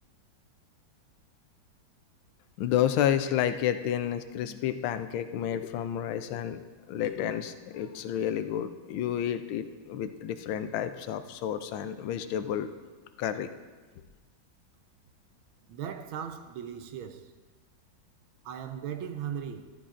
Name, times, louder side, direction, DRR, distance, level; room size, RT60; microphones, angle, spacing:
voice 1, 2.6-6.6 6.9-12.7 13.2-13.5, left 10 dB, 85° left, 1.4 m, -30 dB
voice 2, 15.7-17.3 18.4-19.7, right 8 dB, 85° right, 1.5 m, -38 dB
14.0 x 13.0 x 2.5 m
omnidirectional pair, 2.2 m